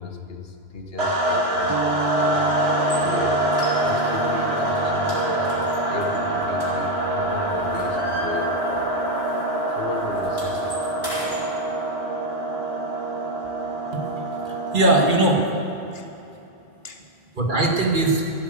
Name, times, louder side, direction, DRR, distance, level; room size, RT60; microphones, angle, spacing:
voice 1, 0.0-3.5 3.8-5.6 5.9-8.9 9.7-10.8 15.9-16.1 16.8-17.0, left 4 dB, 65° left, 4 dB, 1.4 m, -35 dB
sound 1, 1.0-15.7, right 1 dB, 90° right, 2.0 m, -25 dB
sound 2, 1.7-6.9, right 4 dB, 30° right, 0.6 m, -33 dB
sound 3, 2.8-3.0 3.5-4.3 4.6-4.8 5.1-7.1 7.5-8.9 9.2-9.4 9.7-11.4, equal, 20° left, 4.1 m, -36 dB
voice 2, 14.4-15.5 17.4-18.2, right 2 dB, 50° right, 0 dB, 1.7 m, -20 dB
14.0 x 8.4 x 7.7 m, 2.9 s
omnidirectional pair, 1.1 m